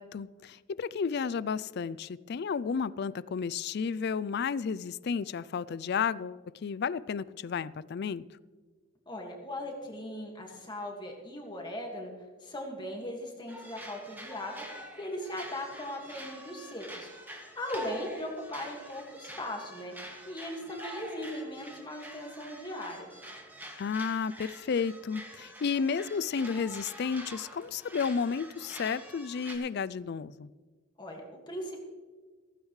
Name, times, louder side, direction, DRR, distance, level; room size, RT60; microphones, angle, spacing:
voice 1, 0.0-8.2 23.8-30.5, left 6 dB, 55° left, 19 dB, 0.4 m, -32 dB
voice 2, 9.1-12.1 12.4-14.6 15.0-17.1 17.6-19.9 20.3-23.1 31.0-31.9, left 1 dB, 20° left, 0 dB, 1.9 m, -39 dB
sound 1, 13.5-29.6, equal, 10° right, 2.1 m, -46 dB
16.0 x 15.5 x 3.2 m, 1.4 s
head